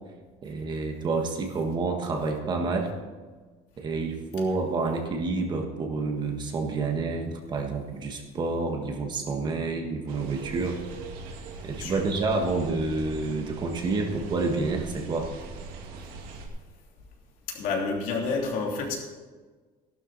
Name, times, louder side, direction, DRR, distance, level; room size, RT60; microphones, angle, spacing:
voice 1, 0.4-2.9 3.8-10.8 11.6-15.3, right 3 dB, 30° right, 3 dB, 1.5 m, -29 dB
sound 1, 10.1-16.5, right 4 dB, 85° right, 2.1 m, -41 dB
voice 2, 11.7-12.0 17.5-19.0, left 4 dB, 70° left, -1 dB, 3.1 m, -29 dB
14.0 x 12.0 x 4.2 m, 1.4 s
cardioid pair, 165°, 15 cm